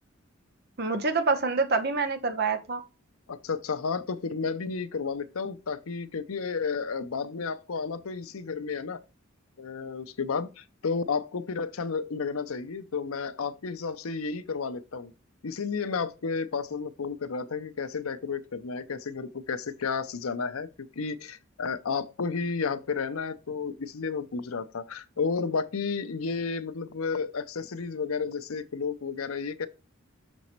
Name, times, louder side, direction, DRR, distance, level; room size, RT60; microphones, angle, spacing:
voice 1, 0.8-2.8, right 4 dB, 50° right, 1.0 m, -26 dB
voice 2, 3.3-9.0 9.6-15.1 15.4-29.7, left 5 dB, 85° left, 0.7 m, -32 dB
6.3 x 4.1 x 4.4 m
head